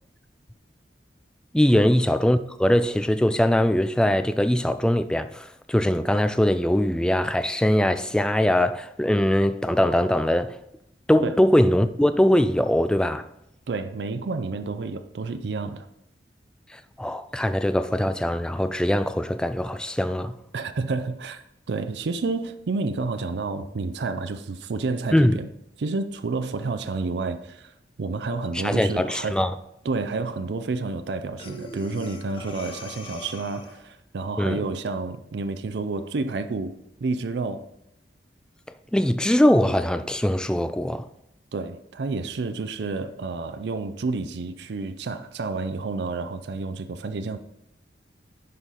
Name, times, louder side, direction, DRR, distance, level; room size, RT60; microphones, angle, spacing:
voice 1, 1.5-10.6 11.1-13.2 16.7-20.4 25.1-25.4 28.5-29.5 34.4-34.6 38.9-41.1, left 1 dB, 5° left, 0.3 m, -21 dB
voice 2, 13.7-15.9 20.5-25.5 25.8-27.7 28.0-29.4 29.8-36.7 37.0-37.7 41.5-47.4, right 3 dB, 70° right, 0.5 m, -30 dB
Breathing, 31.4-34.0, left 3 dB, 30° left, 0.7 m, -41 dB
10.5 x 4.1 x 3.8 m
head